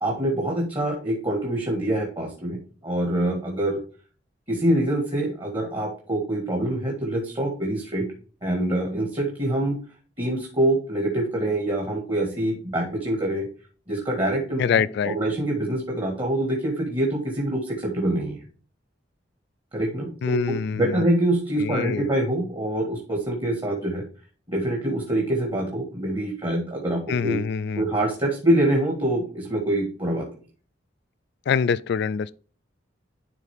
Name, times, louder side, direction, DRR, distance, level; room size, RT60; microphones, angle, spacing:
voice 1, 0.0-3.8 4.5-8.1 8.4-9.7 10.2-13.5 13.9-18.4 19.7-24.0 24.5-27.4 27.8-30.3, right 1 dB, 25° right, 1.7 m, -25 dB
voice 2, 14.6-15.2 20.2-21.0 21.6-22.1 27.1-27.9 31.5-32.3, left 6 dB, 60° left, 0.3 m, -25 dB
10.5 x 3.6 x 3.4 m
head